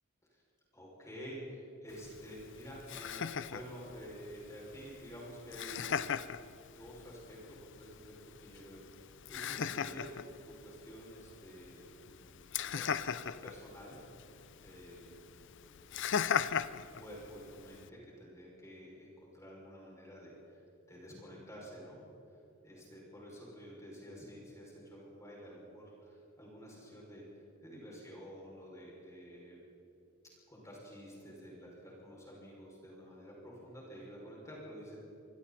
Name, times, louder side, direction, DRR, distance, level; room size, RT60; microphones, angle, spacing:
voice 1, 0.7-6.2 6.5-14.0 14.6-20.6 20.9-22.0 22.6-29.6 30.5-35.0, equal, 15° left, -4 dB, 6.5 m, -50 dB
Laughter, 1.9-17.9, left 7 dB, 60° left, 0.6 m, -40 dB
25.5 x 25.5 x 4.4 m, 2.9 s
head